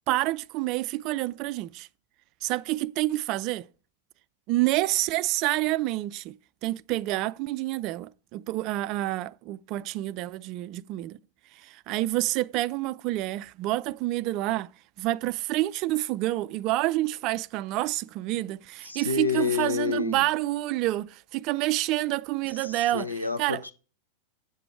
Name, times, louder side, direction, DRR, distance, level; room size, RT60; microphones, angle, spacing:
voice 1, 0.1-1.9 2.4-3.7 4.5-6.4 6.6-11.2 11.6-14.7 15.0-23.1 23.4-23.6, right 17 dB, 40° right, 0.3 m, -28 dB
voice 2, 18.8-20.2 22.5-23.7, left 5 dB, 85° left, 0.9 m, -29 dB
8.3 x 6.8 x 4.6 m
figure-of-eight pair, 90°, 0 cm